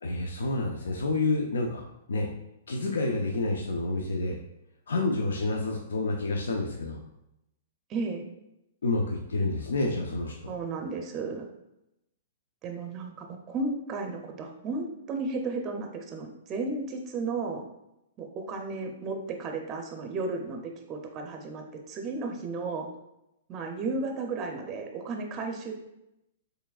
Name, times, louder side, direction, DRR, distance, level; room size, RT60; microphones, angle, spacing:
voice 1, 0.0-1.8 2.1-2.3 2.7-4.4 4.9-7.0 8.8-10.5, left 2 dB, 90° left, 1 dB, 0.5 m, -29 dB
voice 2, 7.9-8.2 10.5-11.5 12.6-17.6 18.2-22.9 23.5-25.7, right 3 dB, 30° right, 3 dB, 0.5 m, -34 dB
4.6 x 3.1 x 2.4 m, 0.85 s
hypercardioid pair, 140°, 0 cm